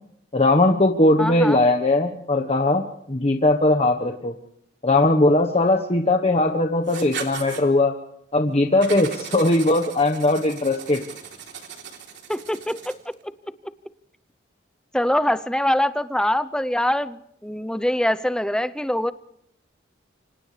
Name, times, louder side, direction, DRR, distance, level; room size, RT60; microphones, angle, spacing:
voice 1, 0.3-2.8 3.1-4.3 4.8-7.9 8.3-11.0, left 2 dB, 35° left, 4 dB, 1.3 m, -19 dB
voice 2, 1.2-1.6 12.3-13.2 14.9-19.1, left 1 dB, 5° left, 13 dB, 0.7 m, -23 dB
Writing, 6.8-7.6 8.8-13.1, right 6 dB, 65° right, 3.5 m, -37 dB
29.5 x 25.5 x 3.4 m, 0.73 s
head